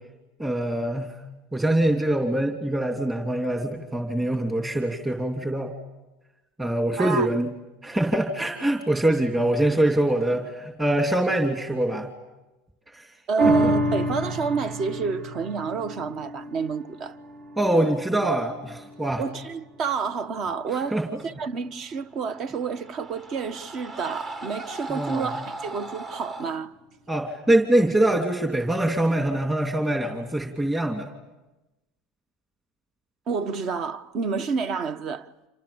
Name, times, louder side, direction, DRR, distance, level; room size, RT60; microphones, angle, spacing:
voice 1, 0.4-1.1 1.5-5.7 6.6-7.5 7.8-12.1 12.9-13.1 13.6-13.7 17.6-19.2 20.9-21.1 24.9-25.3 27.1-31.1, right 1 dB, 15° right, 3.0 m, -24 dB
voice 2, 7.0-7.3 13.3-17.2 19.2-26.7 33.3-35.3, right 5 dB, 50° right, 1.3 m, -29 dB
sound 1, 13.4-20.0 20.5-20.6, right 1 dB, 65° right, 4.8 m, -29 dB
sound 2, 22.1-26.6, right 2 dB, 35° right, 1.8 m, -38 dB
29.0 x 28.0 x 7.2 m
hypercardioid pair, 95°, 0 cm